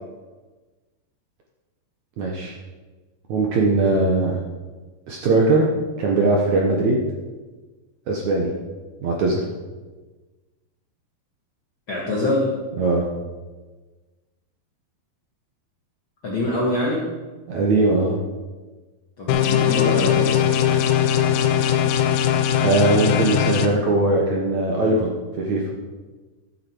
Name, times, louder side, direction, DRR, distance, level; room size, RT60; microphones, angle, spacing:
voice 1, 2.2-2.6 3.3-4.4 5.1-5.7 6.0-7.0 8.1-8.5 9.0-9.4 12.8-13.1 17.5-18.1 22.6-25.6, right 2 dB, 65° right, -1 dB, 2.0 m, -20 dB
voice 2, 11.9-12.5 16.2-17.1 19.2-21.1, left 1 dB, 50° left, -5 dB, 1.6 m, -25 dB
sound 1, 19.3-23.7, left 9 dB, 80° left, 2.7 m, -20 dB
12.5 x 8.6 x 4.5 m, 1.3 s
omnidirectional pair, 4.6 m